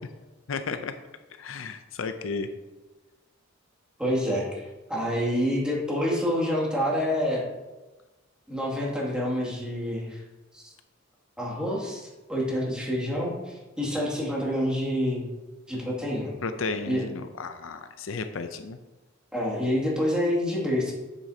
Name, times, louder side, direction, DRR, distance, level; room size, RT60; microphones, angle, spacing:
voice 1, 0.5-0.9 1.4-2.5 16.4-18.8, left 4 dB, 75° left, 8 dB, 0.6 m, -33 dB
voice 2, 4.0-7.4 8.5-10.2 10.5-10.7 11.4-15.3 15.7-16.3 16.8-17.1 19.3-20.9, equal, 5° right, -5 dB, 2.3 m, -27 dB
9.2 x 8.2 x 2.8 m, 1.2 s
head